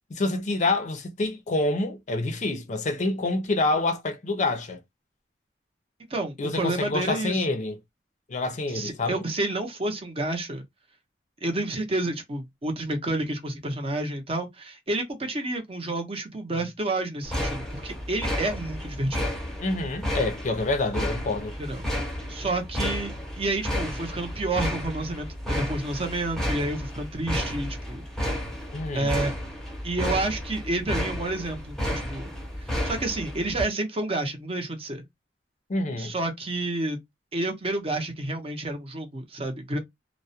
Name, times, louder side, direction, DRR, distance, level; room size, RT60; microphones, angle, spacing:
voice 1, 0.1-4.8 6.4-7.8 8.3-9.2 19.6-21.5 28.7-29.2 35.7-36.1, left 2 dB, 45° left, 0.5 m, -27 dB
voice 2, 6.1-7.4 8.7-10.6 11.4-19.2 21.6-21.9 22.3-28.1 28.9-29.3 29.8-32.3 32.8-35.1 36.0-37.0 37.3-39.8, right 2 dB, 35° right, 0.6 m, -30 dB
sound 1, 17.2-33.6, equal, 5° left, 0.7 m, -32 dB
2.3 x 2.0 x 2.6 m
head